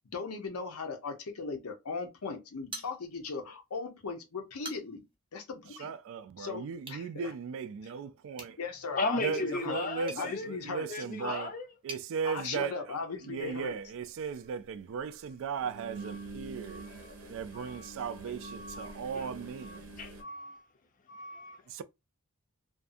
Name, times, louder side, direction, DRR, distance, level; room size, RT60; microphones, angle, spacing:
voice 1, 0.1-5.0 5.3-5.9 6.4-7.3 7.8-7.9 8.6-9.8 10.2-10.9 11.2-11.4 12.2-13.8, left 4 dB, 85° left, 0.7 m, -38 dB
sound 1, 2.7-3.5 3.8-3.9 4.4-5.2 6.8-7.1 8.3-12.1, right 2 dB, 25° right, 0.6 m, -48 dB
voice 2, 5.8-8.6 9.2-10.3 10.7-11.5 11.8-12.7 13.3-16.9 17.3-19.8 21.7-21.8, right 6 dB, 60° right, 0.3 m, -37 dB
voice 3, 9.0-10.5 10.9-11.7 15.9-16.2 16.7-17.1 17.5-17.9 18.3-19.3 19.6-20.6 21.1-21.6, left 3 dB, 35° left, 0.5 m, -37 dB
sound 2, 13.7-13.8 15.6-20.2, right 3 dB, 80° right, 0.7 m, -46 dB
2.5 x 2.3 x 2.5 m
head